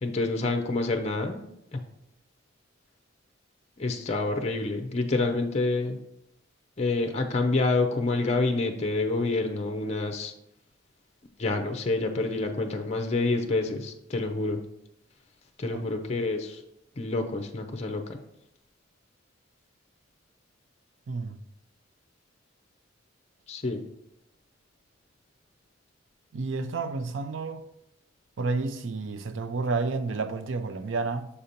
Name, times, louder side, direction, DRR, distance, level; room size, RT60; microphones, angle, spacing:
voice 1, 0.0-1.4 1.7-1.8 3.8-6.0 6.8-10.3 11.4-14.6 15.6-16.6 17.0-18.2 23.5-23.8, left 3 dB, 35° left, 0.5 m, -27 dB
voice 2, 21.1-21.4 26.3-27.7 28.4-31.3, right 3 dB, 70° right, 0.5 m, -30 dB
6.8 x 2.8 x 5.1 m
head